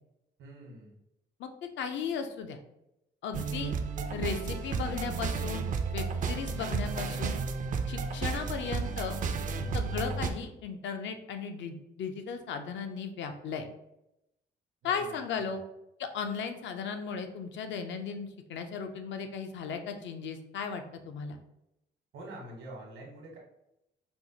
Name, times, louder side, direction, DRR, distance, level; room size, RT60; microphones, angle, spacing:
voice 1, 0.4-1.0 9.5-9.9 14.8-15.1 22.1-23.4, right 1 dB, 75° right, -1 dB, 1.1 m, -46 dB
voice 2, 1.4-2.6 3.2-3.7 4.1-5.7 5.9-7.4 7.9-9.2 9.7-13.7 14.8-15.6 16.0-21.4, left 6 dB, 70° left, 7 dB, 0.5 m, -36 dB
sound 1, 3.3-10.3, right 5 dB, 40° right, 0.4 m, -32 dB
4.4 x 2.1 x 2.8 m, 0.86 s
cardioid pair, 90°, 20 cm